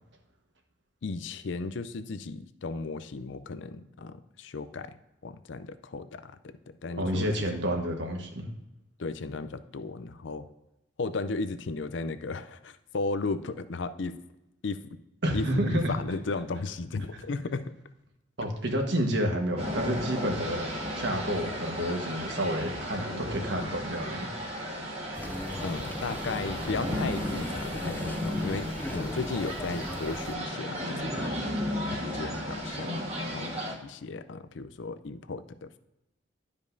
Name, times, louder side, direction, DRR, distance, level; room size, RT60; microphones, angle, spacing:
voice 1, 1.0-5.0 5.2-7.3 9.0-10.5 11.0-14.2 14.6-15.0 15.3-17.7 25.6-31.4 31.7-33.0 33.3-33.5 33.8-35.8, left 3 dB, 70° left, 12 dB, 0.5 m, -35 dB
voice 2, 7.0-8.5 15.2-15.9 18.4-20.7 21.0-24.3, equal, 65° right, 2 dB, 1.4 m, -29 dB
sound 1, 19.6-33.8, equal, 30° right, 1.4 m, -34 dB
sound 2, 25.1-30.4, left 1 dB, 10° left, 0.3 m, -39 dB
11.5 x 5.2 x 2.6 m, 0.92 s
head